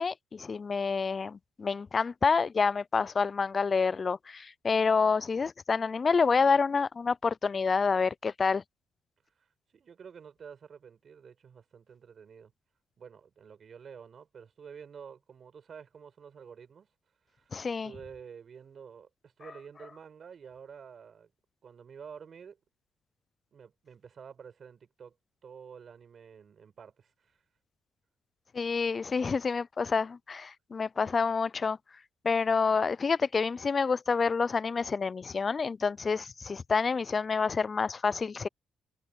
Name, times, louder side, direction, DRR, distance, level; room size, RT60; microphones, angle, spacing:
voice 1, 0.0-8.6 17.5-17.9 28.5-31.8 32.2-38.5, left 5 dB, 35° left, 0.4 m, -28 dB
voice 2, 9.4-12.5 13.0-16.9 17.3-17.5 17.8-21.3 21.6-22.6 23.5-25.2 25.4-27.4, right 7 dB, 50° right, 5.2 m, -49 dB
cardioid pair, 90°, 0 cm